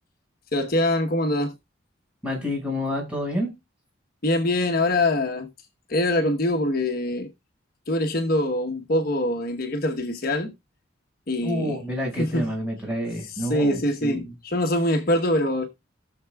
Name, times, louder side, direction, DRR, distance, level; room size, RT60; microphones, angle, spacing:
voice 1, 0.5-1.5 4.2-5.5 5.9-7.3 7.9-10.5 11.3-11.8 12.2-12.5 13.3-15.7, left 1 dB, 50° left, 1.1 m, -24 dB
voice 2, 2.2-3.5 11.4-14.3, equal, 5° right, 5.5 m, -28 dB
19.0 x 6.7 x 2.3 m
head